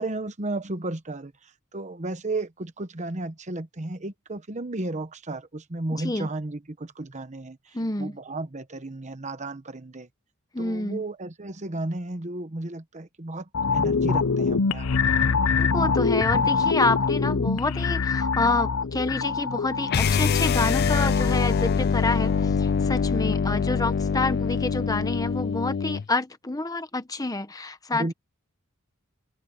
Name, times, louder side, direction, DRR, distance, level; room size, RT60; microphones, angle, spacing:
voice 1, 0.0-10.1 10.6-15.1 27.9-28.1, right 2 dB, 35° right, 1.1 m, -34 dB
voice 2, 5.9-6.3 7.7-8.2 10.5-11.0 15.6-28.1, left 2 dB, 15° left, 1.2 m, -28 dB
sound 1, 13.5-22.8 23.2-23.3, left 5 dB, 85° left, 0.7 m, -25 dB
sound 2, 19.9-26.1, left 5 dB, 50° left, 0.4 m, -24 dB
head